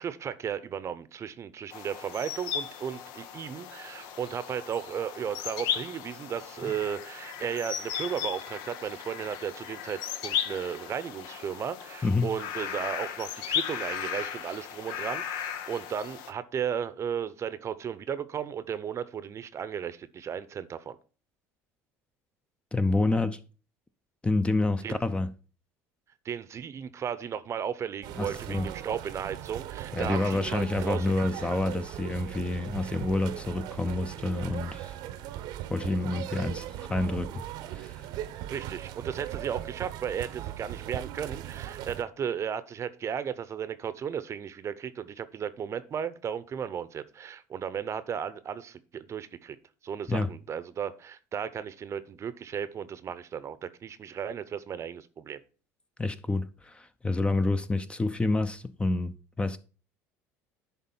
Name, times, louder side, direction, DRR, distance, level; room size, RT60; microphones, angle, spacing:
voice 1, 0.0-21.0 24.8-25.0 26.2-31.1 38.5-49.6 49.8-55.4, right 8 dB, 40° right, 0.8 m, -35 dB
sound 1, 1.7-16.3, left 9 dB, 70° left, 0.9 m, -36 dB
voice 2, 22.7-23.4 24.2-25.3 28.2-28.7 29.9-34.9 35.7-37.4 37.7-38.0 50.1-50.3 56.0-59.6, left 2 dB, 15° left, 0.7 m, -28 dB
sound 2, 28.0-42.0, right 12 dB, 65° right, 0.8 m, -38 dB
10.5 x 3.7 x 5.5 m
supercardioid pair, 85°, 8 cm